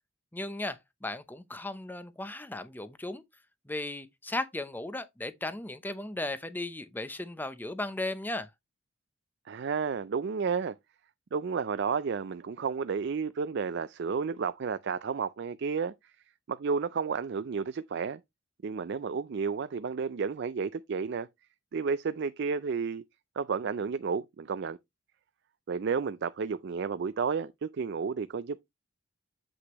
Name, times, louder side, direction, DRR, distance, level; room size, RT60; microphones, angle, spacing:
voice 1, 0.3-3.2 3.7-8.5, left 2 dB, 10° left, 0.6 m, -36 dB
voice 2, 9.5-10.7 11.3-15.9 16.5-18.2 18.6-21.3 21.7-23.0 23.4-24.8 25.7-28.6, right 5 dB, 50° right, 0.4 m, -31 dB
7.8 x 6.1 x 3.0 m
head